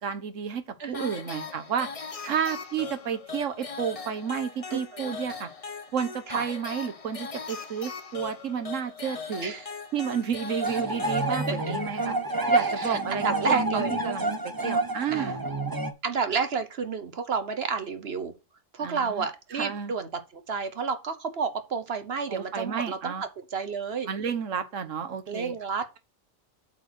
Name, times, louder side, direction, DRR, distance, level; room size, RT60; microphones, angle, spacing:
voice 1, 0.0-0.6 0.9-1.9 2.3-5.5 5.9-9.5 9.9-12.1 12.5-14.3 14.6-15.4 18.8-19.3 19.5-19.9 22.3-23.2 24.1-25.6, right 7 dB, 75° right, 1.5 m, -31 dB
voice 2, 0.8-1.1 2.2-2.4 4.7-5.2 6.3-6.4 9.4-9.7 11.5-11.7 12.5-14.0 15.1-15.4 16.0-18.3 18.7-24.1 25.3-25.9, right 5 dB, 55° right, 1.1 m, -31 dB
sound 1, 0.9-12.1, left 5 dB, 30° left, 0.8 m, -40 dB
sound 2, 10.6-15.9, right 2 dB, 20° right, 0.7 m, -28 dB
8.3 x 4.3 x 6.2 m
omnidirectional pair, 1.3 m